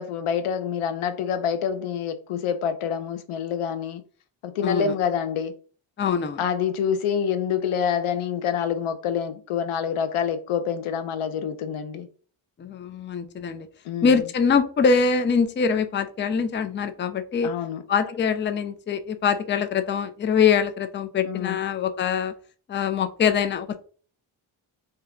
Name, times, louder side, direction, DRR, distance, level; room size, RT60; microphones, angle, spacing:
voice 1, 0.0-4.0 4.4-5.5 6.4-12.1 13.8-14.2 17.4-17.8 21.2-21.6, left 7 dB, 85° left, 0.6 m, -27 dB
voice 2, 4.6-4.9 6.0-6.4 12.6-13.7 14.0-17.5 17.9-22.3 22.7-23.9, left 6 dB, 25° left, 0.3 m, -23 dB
2.7 x 2.2 x 3.6 m
cardioid pair, 70°, 50 cm